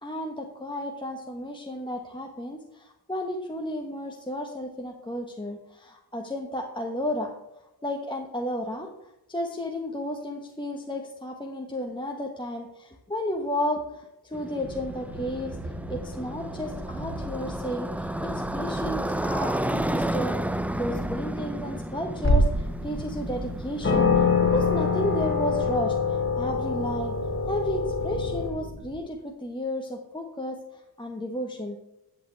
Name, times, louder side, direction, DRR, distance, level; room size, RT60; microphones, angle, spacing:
voice 1, 0.0-7.3 7.8-15.6 15.9-27.1 27.5-31.8, equal, 10° left, 1 dB, 1.1 m, -33 dB
Motorcycle, 14.3-25.8, right 1 dB, 5° right, 0.4 m, -33 dB
sound 1, 14.6-29.0, right 1 dB, 75° right, 2.3 m, -40 dB
sound 2, 22.2-22.7 23.3-23.4 23.8-28.5, left 4 dB, 30° left, 2.1 m, -24 dB
11.0 x 8.4 x 3.4 m, 0.92 s
wide cardioid pair, 85°, 39 cm